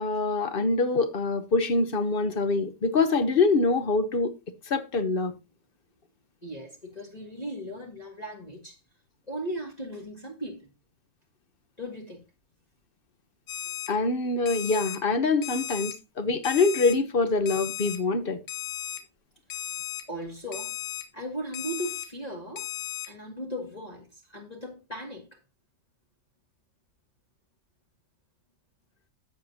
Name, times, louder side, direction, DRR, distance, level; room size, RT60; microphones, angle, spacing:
voice 1, 0.0-4.3 4.7-5.3 13.9-18.4, left 3 dB, 45° left, 0.9 m, -25 dB
voice 2, 6.4-8.8 9.3-10.7 11.8-12.2 20.1-20.8 21.1-22.7 23.0-25.4, equal, 25° left, 1.6 m, -37 dB
Alarm, 13.5-13.9 14.5-15.0 15.4-15.9 16.4-16.9 17.5-18.0 18.5-19.0 19.5-20.0 20.5-21.0 21.5-22.0 22.6-23.1, left 11 dB, 80° left, 1.9 m, -35 dB
11.5 x 7.7 x 2.8 m
omnidirectional pair, 1.7 m